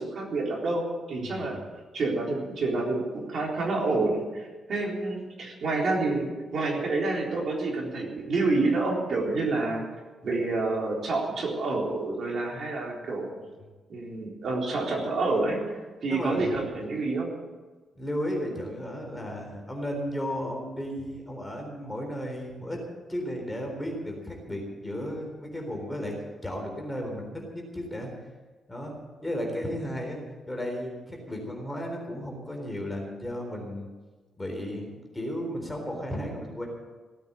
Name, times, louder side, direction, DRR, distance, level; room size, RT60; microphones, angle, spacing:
voice 1, 0.0-1.6 1.9-6.3 6.5-9.8 10.2-13.3 13.9-17.3, right 3 dB, 50° right, -1 dB, 3.9 m, -28 dB
voice 2, 1.2-1.6 16.1-16.6 18.0-22.8 23.1-28.1 28.7-28.9 29.2-30.2 30.5-33.9 34.4-36.7, equal, 10° left, 1 dB, 3.9 m, -34 dB
17.5 x 9.1 x 8.8 m, 1.3 s
wide cardioid pair, 155°, 0 cm